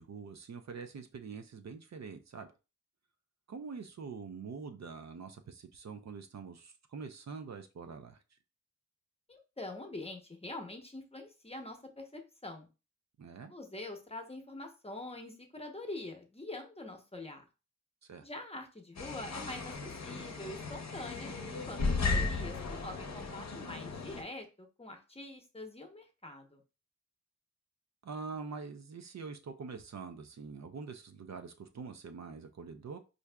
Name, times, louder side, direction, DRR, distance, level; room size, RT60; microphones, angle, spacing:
voice 1, 0.0-2.5 3.5-8.2 13.2-13.5 18.1-18.2 28.0-33.0, right 5 dB, 60° right, 0.5 m, -45 dB
voice 2, 9.3-12.7 13.5-17.5 18.2-26.6, left 2 dB, 20° left, 0.8 m, -45 dB
sound 1, 19.0-24.2, left 3 dB, 60° left, 0.7 m, -35 dB
4.6 x 2.5 x 2.2 m
cardioid pair, 55°, 31 cm